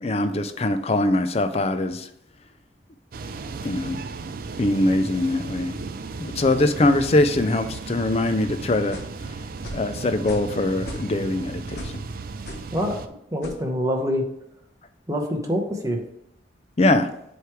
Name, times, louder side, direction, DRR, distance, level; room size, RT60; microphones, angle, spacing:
voice 1, 0.0-2.1 3.6-4.0 4.6-5.8 6.2-9.0 9.7-11.9 16.8-17.1, left 2 dB, 35° left, 9 dB, 0.5 m, -22 dB
sound 1, 3.1-13.1, right 3 dB, 50° right, 0.4 m, -35 dB
sound 2, 8.9-9.2 9.6-9.9 10.3-10.5 10.8-11.3 11.8-12.0 12.5-12.7 13.4-13.6, left 1 dB, 65° left, 1.1 m, -38 dB
voice 2, 13.3-14.2 15.1-16.0, equal, 15° right, 2 dB, 0.9 m, -25 dB
8.0 x 3.2 x 4.6 m, 0.79 s
head